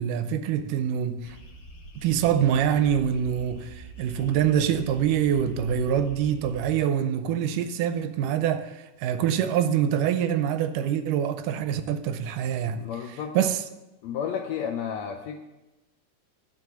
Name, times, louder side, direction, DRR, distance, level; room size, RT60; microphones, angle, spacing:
voice 1, 0.0-1.4 2.0-12.8 13.4-13.6, right 9 dB, 85° right, 2.2 m, -25 dB
sound 1, 1.2-6.7, right 2 dB, 50° left, 2.4 m, -45 dB
voice 2, 12.8-13.4 14.0-15.4, left 7 dB, 75° left, 1.7 m, -32 dB
11.0 x 6.1 x 6.9 m
omnidirectional pair, 3.8 m